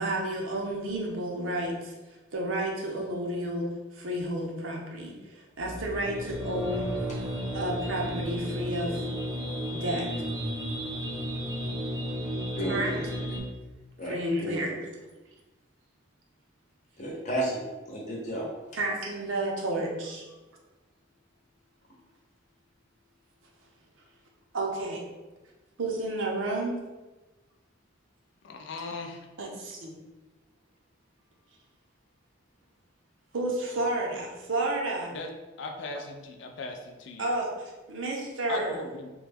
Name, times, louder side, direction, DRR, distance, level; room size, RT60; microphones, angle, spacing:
voice 1, 0.0-1.9 2.3-6.9 7.5-9.0 9.7-10.1 12.7-12.9 14.0-14.8 18.8-20.2 24.5-25.0 25.8-26.8 29.4-29.9 33.3-35.1 37.2-38.8, right 1 dB, 80° right, 0.7 m, -31 dB
sound 1, 5.6-13.4, equal, 20° right, 0.5 m, -33 dB
voice 2, 12.6-13.0 14.0-14.6 17.0-17.6 17.9-18.5, right 1 dB, 40° left, 0.8 m, -32 dB
voice 3, 28.4-29.2 35.1-35.3 35.6-37.3 38.5-39.1, left 3 dB, 65° left, 0.4 m, -38 dB
3.0 x 2.2 x 3.4 m
head